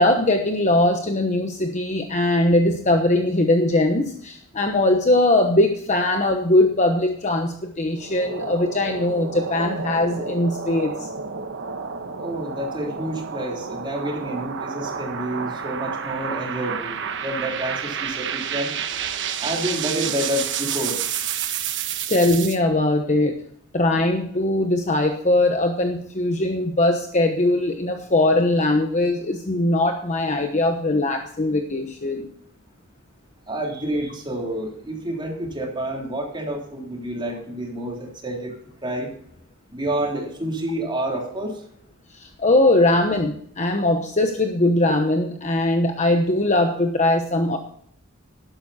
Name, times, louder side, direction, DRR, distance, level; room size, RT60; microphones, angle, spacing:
voice 1, 0.0-11.1 22.1-23.4 23.7-32.3 42.1-47.6, left 2 dB, 35° left, 4 dB, 1.0 m, -20 dB
sound 1, 8.0-22.6, right 7 dB, 60° right, 1.2 m, -30 dB
voice 2, 12.2-18.7 19.4-21.0 33.5-38.5 38.8-39.1 39.7-41.6, right 1 dB, 25° right, -1 dB, 3.4 m, -29 dB
12.0 x 11.5 x 4.2 m, 0.64 s
head